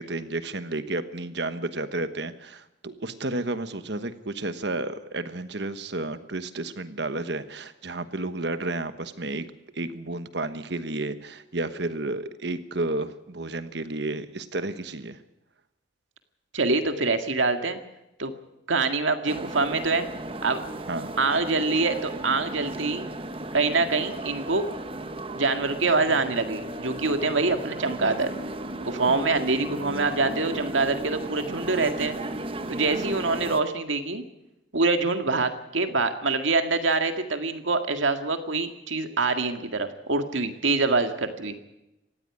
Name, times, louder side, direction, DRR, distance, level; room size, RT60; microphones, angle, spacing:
voice 1, 0.0-9.5 9.7-15.2 20.9-21.1 29.1-29.2 32.9-33.0, right 2 dB, 60° right, 11 dB, 1.2 m, -32 dB
voice 2, 16.5-17.8 18.2-18.3 18.7-20.1 20.4-20.6 21.2-23.1 23.5-24.7 25.3-28.3 28.8-32.2 32.7-34.2 34.7-41.5, right 3 dB, 80° right, 7 dB, 2.0 m, -25 dB
sound 1, 19.3-33.6, right 1 dB, 30° right, 1.1 m, -35 dB
18.5 x 15.0 x 9.6 m, 0.92 s
head